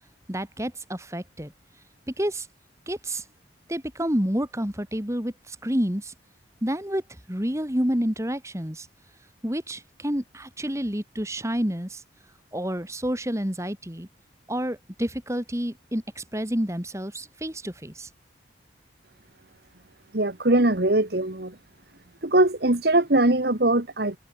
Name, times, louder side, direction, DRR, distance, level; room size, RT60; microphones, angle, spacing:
voice 1, 0.3-1.5 2.2-2.5 2.9-3.2 3.7-6.1 6.6-7.0 7.3-8.9 9.4-12.0 12.5-14.1 14.5-18.1, equal, 15° right, 3.3 m, -29 dB
voice 2, 20.1-21.5 22.2-24.2, right 2 dB, 55° right, 1.9 m, -21 dB
head